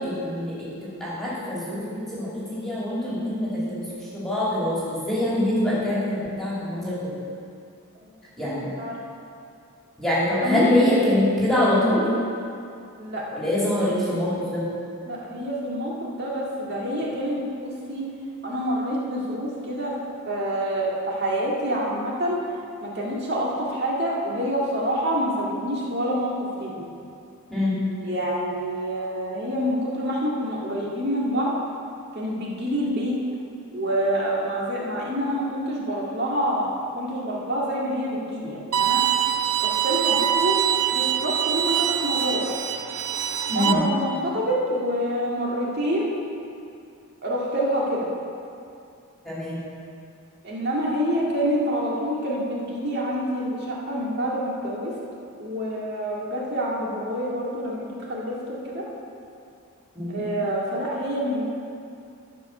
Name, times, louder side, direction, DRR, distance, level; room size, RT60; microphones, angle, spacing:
voice 1, 0.0-3.9 4.1-7.1 8.4-8.7 10.0-12.0 13.3-14.6 27.5-27.8 43.5-43.8 49.2-49.6 59.9-60.2, left 1 dB, ahead, -9 dB, 2.6 m, -24 dB
voice 2, 8.4-9.0 10.3-11.1 13.0-13.2 15.1-18.0 18.4-19.9 20.3-22.4 22.8-26.9 28.0-31.5 32.1-33.2 33.7-36.7 37.0-39.0 39.6-42.5 43.5-46.1 47.2-48.1 50.4-54.9 55.4-58.8 60.1-61.4, equal, 50° right, -4 dB, 1.9 m, -27 dB
Bowed string instrument, 38.7-43.7, right 10 dB, 80° right, 0.6 m, -24 dB
14.0 x 5.2 x 6.3 m, 2.5 s
head